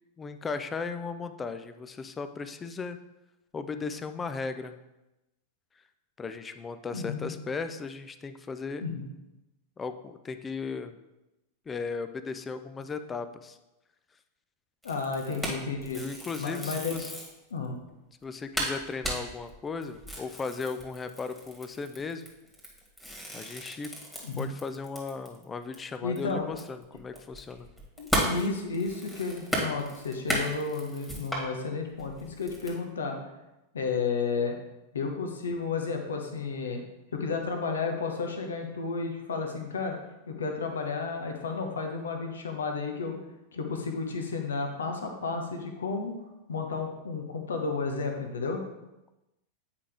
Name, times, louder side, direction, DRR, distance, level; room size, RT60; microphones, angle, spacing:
voice 1, 0.2-3.0 3.5-4.8 6.2-8.9 9.8-10.9 11.7-13.6 16.0-17.1 18.2-22.2 23.3-23.9 24.4-27.7, left 4 dB, 20° left, 10 dB, 0.5 m, -36 dB
voice 2, 6.9-7.3 8.8-9.0 14.8-16.0 16.4-17.0 17.5-17.7 24.2-24.5 26.0-26.5 28.0-33.2 33.7-34.5 34.9-36.8 37.1-40.0 40.3-43.2 43.5-46.1 46.5-48.6, left 4 dB, 65° left, 4 dB, 0.9 m, -32 dB
sound 1, 14.8-17.4 17.9-18.0 18.2-18.3 18.6-25.4 25.7-25.8 26.2-31.5 32.0-32.7, equal, ahead, 1.8 m, -35 dB
8.4 x 4.9 x 3.5 m, 0.96 s
figure-of-eight pair, 90°, 0 cm